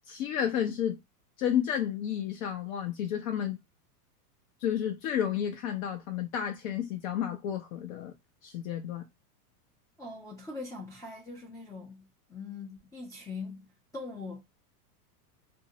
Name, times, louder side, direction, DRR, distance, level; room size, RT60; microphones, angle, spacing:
voice 1, 0.1-1.0 1.4-3.6 4.6-8.1 8.4-9.1, left 9 dB, 60° left, 0.7 m, -31 dB
voice 2, 10.0-13.7 13.9-14.4, left 3 dB, 10° left, 0.4 m, -42 dB
2.6 x 2.0 x 2.7 m
hypercardioid pair, 120°, 48 cm